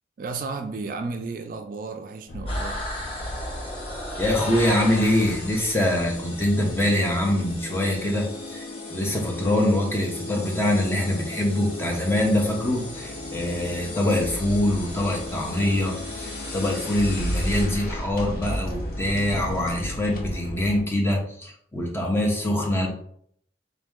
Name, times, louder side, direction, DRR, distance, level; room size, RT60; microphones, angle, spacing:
voice 1, 0.2-2.8, right 4 dB, 50° right, 6 dB, 0.3 m, -33 dB
sound 1, 2.3-20.8, left 1 dB, 50° left, 0.6 m, -35 dB
sound 2, 2.5-17.7, left 2 dB, 35° left, 1.2 m, -38 dB
voice 2, 4.2-22.9, left 1 dB, 15° left, -1 dB, 0.8 m, -24 dB
3.6 x 2.9 x 3.5 m, 0.65 s
head